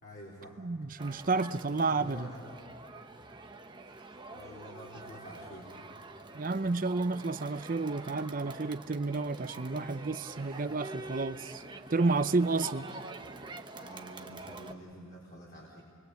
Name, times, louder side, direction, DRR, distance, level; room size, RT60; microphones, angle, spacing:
voice 1, 0.0-0.7 1.8-2.4 3.9-5.8 13.8-15.8, equal, 40° left, 4.1 m, -48 dB
voice 2, 0.6-2.3 6.3-11.6 11.9-12.8, right 3 dB, 40° right, 0.6 m, -31 dB
Crowd, 1.0-14.7, right 2 dB, 20° right, 1.0 m, -46 dB
28.5 x 22.5 x 8.2 m
head